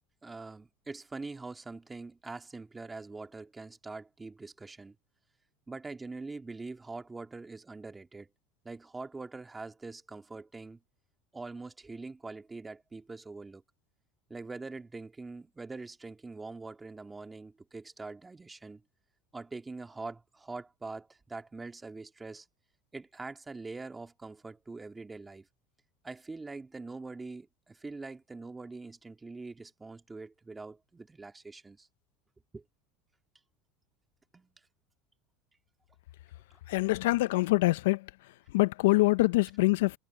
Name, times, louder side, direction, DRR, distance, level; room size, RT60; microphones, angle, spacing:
voice 1, 0.2-5.0 5.7-8.3 8.7-10.8 11.3-13.6 14.3-18.8 19.3-22.5 22.9-25.4 26.0-31.9 32.5-32.6 34.3-34.5, right 3 dB, 15° right, 1.9 m, -43 dB
voice 2, 36.7-38.1 38.5-40.0, left 20 dB, 80° left, 0.5 m, -25 dB
supercardioid pair, 110°, 0 cm